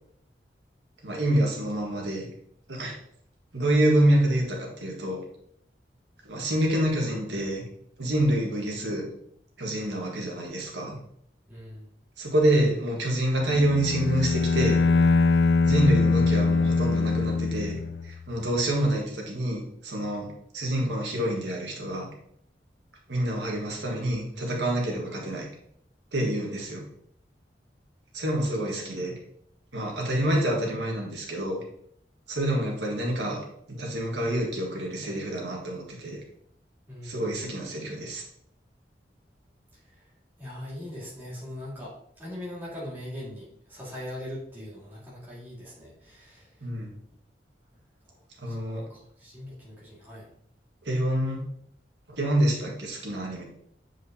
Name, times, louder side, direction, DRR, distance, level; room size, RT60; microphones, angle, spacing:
voice 1, 1.0-2.3 2.7-3.0 3.5-5.2 6.3-7.6 8.0-9.1 9.6-11.0 12.2-14.8 15.6-17.8 18.0-20.3 20.5-22.1 23.1-25.5 26.1-26.8 28.1-29.1 29.7-31.6 32.3-33.4 33.7-36.2 37.0-38.2 46.6-46.9 48.4-48.8 50.9-51.4 52.1-53.4, right 1 dB, 80° right, -1 dB, 1.7 m, -27 dB
voice 2, 11.5-11.9 36.9-37.4 39.9-40.0 40.4-46.7 48.1-50.3, left 1 dB, 10° right, -8 dB, 2.0 m, -41 dB
Bowed string instrument, 13.4-18.2, left 4 dB, 65° left, 0.3 m, -23 dB
8.0 x 4.9 x 2.8 m, 0.69 s
head